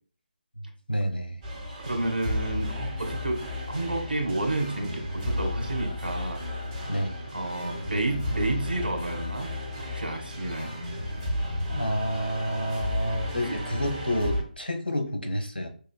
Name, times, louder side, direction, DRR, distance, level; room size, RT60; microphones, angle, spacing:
voice 1, 0.9-1.4 6.9-7.2 11.7-15.7, equal, 85° left, 4 dB, 1.2 m, -29 dB
sound 1, 1.4-14.4, left 1 dB, 25° right, 2.1 m, -33 dB
voice 2, 1.8-3.4 3.7-6.4 7.3-9.5 9.9-10.7 13.4-13.6, right 2 dB, 80° right, 2 dB, 1.7 m, -30 dB
5.4 x 3.4 x 2.3 m, 0.43 s
figure-of-eight pair, 150°, 5 cm